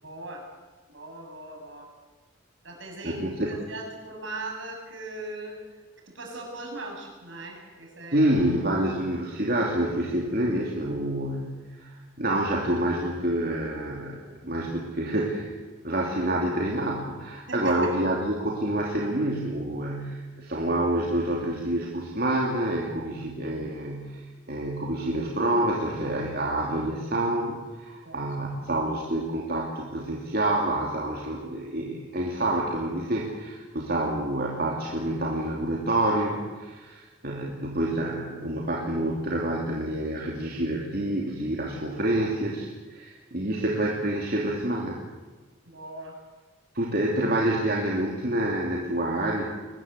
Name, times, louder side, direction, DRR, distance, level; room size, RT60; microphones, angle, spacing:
voice 1, 0.0-0.5 0.9-1.9 2.6-5.6 6.1-8.3 17.5-17.9 28.0-28.3 45.7-46.2, right 2 dB, 70° right, 1 dB, 7.6 m, -39 dB
voice 2, 3.0-3.5 8.1-11.4 11.8-11.9 12.2-15.5 15.8-24.2 24.5-45.0 46.7-49.4, right 1 dB, 50° right, -2 dB, 2.9 m, -27 dB
23.0 x 20.5 x 8.3 m, 1.3 s
head